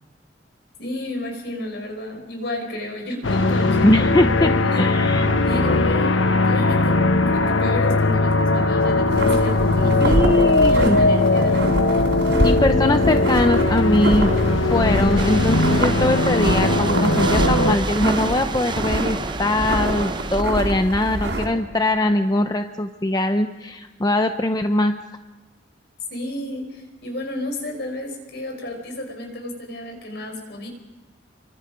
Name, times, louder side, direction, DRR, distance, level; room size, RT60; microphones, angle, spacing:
voice 1, 0.8-4.9 5.4-7.0 7.3-12.0 26.1-30.7, left 1 dB, 60° left, 3 dB, 5.5 m, -32 dB
sound 1, 3.2-17.8, left 2 dB, 85° left, 1.1 m, -19 dB
voice 2, 3.8-4.5 4.8-5.3 10.0-11.0 12.4-14.3 14.7-24.9, left 1 dB, 20° left, 7 dB, 0.7 m, -21 dB
sound 2, 9.1-21.5, right 1 dB, 65° right, 4.6 m, -25 dB
sound 3, 15.2-20.4, right 4 dB, 25° right, 0.7 m, -31 dB
29.5 x 24.0 x 5.1 m, 1.1 s
head